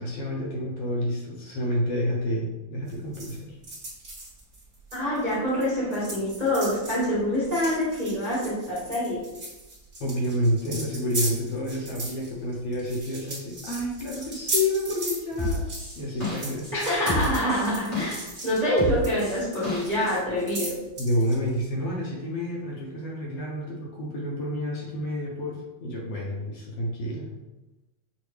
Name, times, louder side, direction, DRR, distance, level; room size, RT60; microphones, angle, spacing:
voice 1, 0.0-3.6 10.0-15.6 15.9-16.7 21.0-27.4, left 1 dB, 70° left, -3 dB, 1.6 m, -29 dB
sound 1, 2.9-5.6 5.9-21.6, right 2 dB, 35° right, 1.1 m, -37 dB
voice 2, 4.9-9.2 16.7-20.8, equal, 70° right, -9 dB, 0.3 m, -26 dB
sound 2, 15.4-16.7 17.1-18.4 18.8-20.2, left 1 dB, 55° left, 0.3 m, -30 dB
6.5 x 2.2 x 3.2 m, 1.0 s
omnidirectional pair, 3.3 m